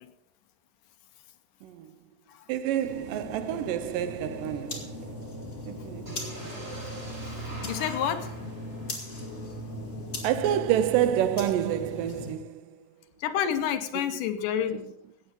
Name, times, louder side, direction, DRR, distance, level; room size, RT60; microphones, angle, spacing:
voice 1, 1.6-1.9 2.5-5.3 5.7-6.4 10.2-12.9 13.9-14.2 14.7-14.9, right 11 dB, 80° right, 2.1 m, -29 dB
sound 1, 2.8-12.3, left 1 dB, 25° left, 2.2 m, -39 dB
sound 2, 6.1-10.0, right 2 dB, 20° right, 2.4 m, -42 dB
voice 2, 7.6-8.3 13.2-14.8, left 9 dB, 75° left, 2.2 m, -28 dB
15.5 x 8.7 x 5.3 m
omnidirectional pair, 4.1 m